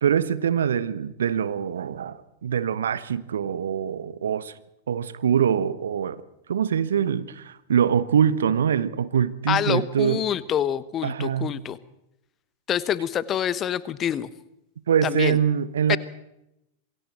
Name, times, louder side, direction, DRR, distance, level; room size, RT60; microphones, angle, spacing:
voice 1, 0.0-4.5 4.9-6.2 6.5-10.2 11.0-11.5 14.9-16.0, right 8 dB, 65° right, 15 dB, 1.2 m, -24 dB
voice 2, 9.5-11.8 12.7-14.3 15.0-15.4 15.9-16.0, left 10 dB, 30° left, 17 dB, 1.1 m, -26 dB
27.0 x 23.0 x 4.4 m, 0.83 s
figure-of-eight pair, 90°, 0 cm